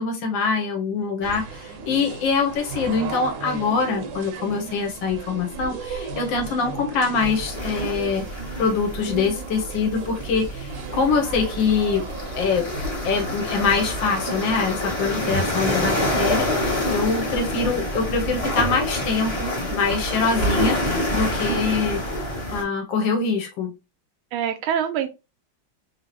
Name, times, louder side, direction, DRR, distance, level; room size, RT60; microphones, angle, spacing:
voice 1, 0.0-8.3 8.6-12.1 12.3-22.0 22.5-23.7, left 4 dB, 75° left, 1.5 m, -24 dB
sound 1, 1.2-16.4, right 3 dB, 70° right, 1.3 m, -35 dB
voice 2, 4.3-4.8 15.2-15.5 21.5-21.9 24.3-25.1, right 9 dB, 85° right, 1.4 m, -28 dB
sound 2, 7.2-22.6, left 1 dB, 25° left, 0.7 m, -27 dB
3.5 x 2.7 x 2.9 m
omnidirectional pair, 2.2 m